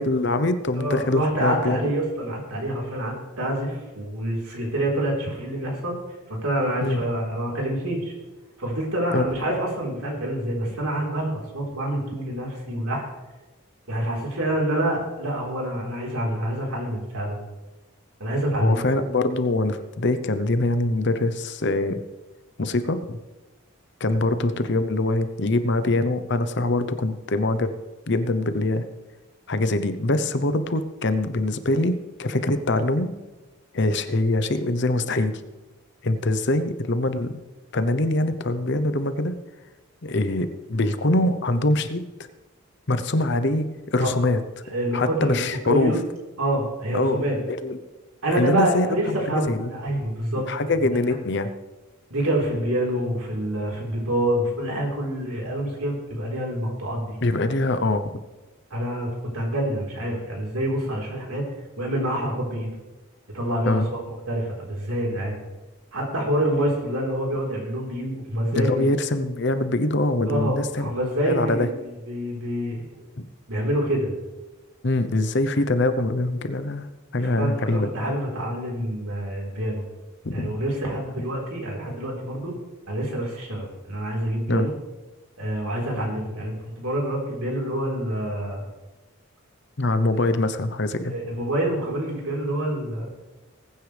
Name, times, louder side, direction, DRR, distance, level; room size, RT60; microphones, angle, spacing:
voice 1, 0.0-1.8 6.8-7.0 9.1-9.3 18.6-22.0 22.6-23.2 24.0-27.7 28.1-28.9 29.5-33.1 33.7-35.3 36.0-37.4 37.7-39.3 40.0-42.0 42.9-44.4 44.9-45.9 46.9-47.2 47.5-47.8 48.4-48.9 49.3-49.7 50.5-51.5 57.2-58.1 63.7-63.9 68.5-70.9 71.3-71.7 73.2-73.3 74.8-76.9 77.1-77.9 80.2-80.6 84.5-84.7 89.8-91.2, left 2 dB, 50° left, 11 dB, 0.8 m, -23 dB
voice 2, 0.8-6.0 6.3-8.1 8.6-13.0 13.9-17.4 18.2-18.8 44.0-44.1 44.7-45.4 45.7-46.0 46.4-47.4 48.2-50.5 51.1-51.2 52.1-57.2 58.7-61.4 61.8-62.7 63.3-63.8 64.3-65.4 65.9-68.9 70.3-71.7 72.1-72.9 73.5-74.1 77.4-79.8 80.3-82.5 82.9-84.7 85.4-88.6 91.0-93.1, right 1 dB, 90° right, -2 dB, 4.1 m, -27 dB
20.0 x 9.7 x 3.4 m, 1.1 s
head